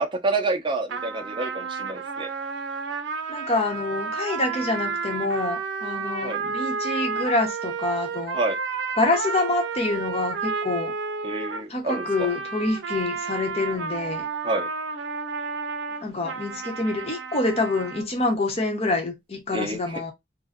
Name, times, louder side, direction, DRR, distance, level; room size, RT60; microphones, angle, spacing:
voice 1, 0.0-2.3 6.2-6.4 8.3-8.6 11.2-12.3 14.4-14.7 19.5-20.0, right 2 dB, 25° right, 0.6 m, -28 dB
sound 1, 0.9-18.1, right 5 dB, 85° right, 0.5 m, -31 dB
voice 2, 3.3-8.4 9.0-10.9 11.7-14.3 16.0-20.1, left 2 dB, 35° left, 0.9 m, -26 dB
2.5 x 2.2 x 3.5 m
head